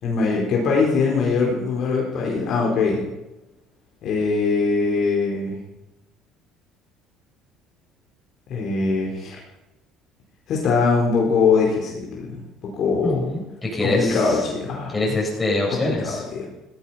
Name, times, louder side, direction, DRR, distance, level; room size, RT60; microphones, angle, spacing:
voice 1, 0.0-3.1 4.0-5.6 8.5-9.4 10.5-13.3 13.8-15.2 15.7-16.5, left 4 dB, 55° left, -2 dB, 4.4 m, -22 dB
voice 2, 13.0-14.2 14.9-16.2, left 2 dB, 20° left, -2 dB, 7.9 m, -24 dB
17.0 x 14.0 x 5.8 m, 0.97 s
cardioid pair, 105°, 0 cm